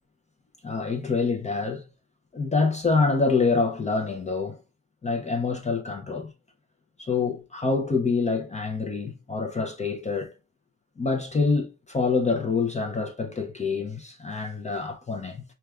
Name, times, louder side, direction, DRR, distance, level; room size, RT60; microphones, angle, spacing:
voice 1, 0.6-1.8 2.3-4.6 5.0-6.3 7.0-10.3 11.0-15.4, left 4 dB, 20° left, 0.4 m, -26 dB
4.6 x 2.3 x 2.3 m
wide cardioid pair, 160°, 32 cm